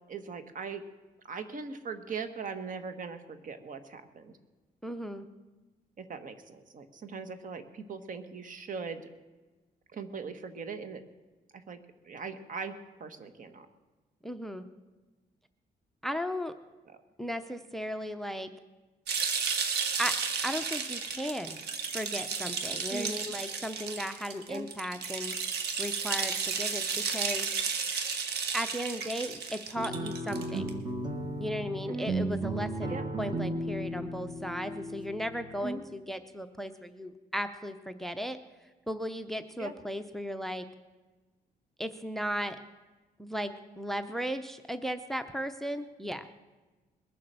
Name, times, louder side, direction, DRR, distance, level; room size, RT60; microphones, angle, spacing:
voice 1, 0.1-0.8 1.2-4.3 6.0-9.1 9.9-11.0 11.5-11.8 12.0-13.7 16.9-17.0 22.9-23.1 24.5-24.7 31.9-32.1 32.9-33.1 35.6-35.8 39.6-39.7, right 5 dB, 55° right, 9 dB, 1.4 m, -40 dB
voice 2, 4.8-5.3 14.2-14.7 16.0-16.6 17.2-18.5 20.0-20.2 20.4-21.6 21.9-25.4 25.8-27.5 28.5-30.7 31.4-38.4 38.9-40.7 41.8-42.6 43.2-46.3, equal, ahead, 11 dB, 0.7 m, -36 dB
sound 1, 19.1-30.7, right 5 dB, 85° right, 1.6 m, -33 dB
sound 2, 29.7-35.6, right 1 dB, 25° right, 1.5 m, -35 dB
21.0 x 7.5 x 6.8 m, 1.2 s
cardioid pair, 115°, 17 cm